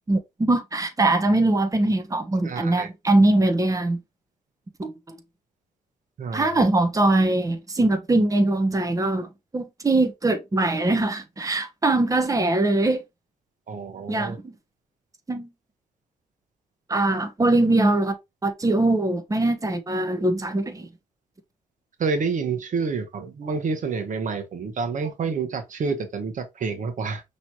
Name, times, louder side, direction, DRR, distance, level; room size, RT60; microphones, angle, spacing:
voice 1, 0.1-4.0 4.8-5.2 6.3-9.3 9.5-13.0 14.1-14.3 15.3-15.5 16.9-18.2 18.4-20.9, right 2 dB, 25° right, 1.0 m, -22 dB
voice 2, 2.4-2.9 6.2-6.5 13.7-14.4 22.0-27.2, right 4 dB, 65° right, 1.1 m, -28 dB
5.8 x 3.2 x 2.8 m
supercardioid pair, 60°, 14 cm